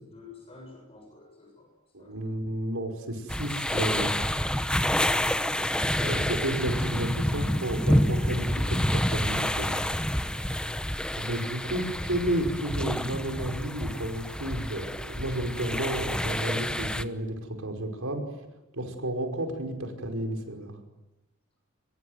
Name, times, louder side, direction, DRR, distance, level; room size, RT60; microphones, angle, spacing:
voice 1, 0.1-1.7 2.0-2.2 4.8-5.7 10.3-10.9, left 2 dB, 30° left, 2 dB, 7.0 m, -50 dB
voice 2, 1.9-4.3 6.0-9.9 11.2-18.3 18.7-20.7, right 1 dB, 85° right, 5 dB, 5.2 m, -32 dB
sound 1, 3.3-17.0, equal, 5° left, 0.9 m, -28 dB
24.0 x 22.0 x 9.5 m, 1.0 s
head